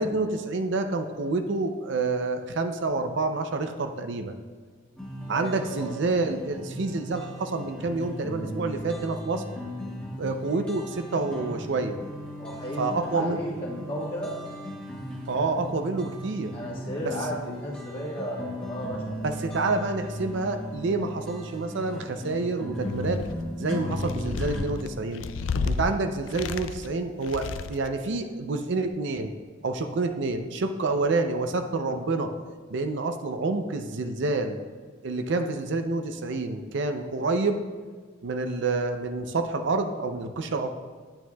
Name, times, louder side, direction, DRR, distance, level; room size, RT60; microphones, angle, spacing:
voice 1, 0.0-4.3 5.3-9.4 10.2-12.0 12.8-13.4 15.3-16.5 17.0-17.1 19.2-23.2 23.6-25.3 25.6-29.3 29.6-32.3 32.7-34.6 35.0-37.6 38.2-40.7, right 3 dB, 60° right, 7 dB, 0.5 m, -28 dB
sound 1, 5.0-24.6, equal, 5° left, 1.2 m, -37 dB
voice 2, 5.3-5.9 12.4-14.3 16.5-19.3, equal, 25° left, -3 dB, 1.4 m, -35 dB
sound 2, 22.9-23.5 23.9-25.8 26.3-26.9 27.2-27.9, left 4 dB, 65° left, 0.4 m, -32 dB
9.1 x 8.8 x 2.3 m, 1.5 s
head